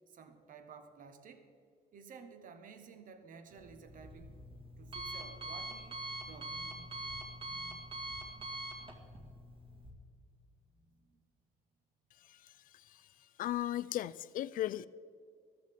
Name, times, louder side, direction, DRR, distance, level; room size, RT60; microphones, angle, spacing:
voice 1, 0.1-1.5 1.9-4.4 4.8-6.0 6.2-8.6 10.7-11.2, right 5 dB, 55° right, 8 dB, 1.2 m, -55 dB
Alarm, 3.5-9.9, right 1 dB, 30° right, 2.1 m, -44 dB
voice 2, 13.4-14.9, left 13 dB, 55° left, 18 dB, 0.4 m, -35 dB
13.5 x 13.5 x 3.7 m, 2.2 s
cardioid pair, 110°, 17 cm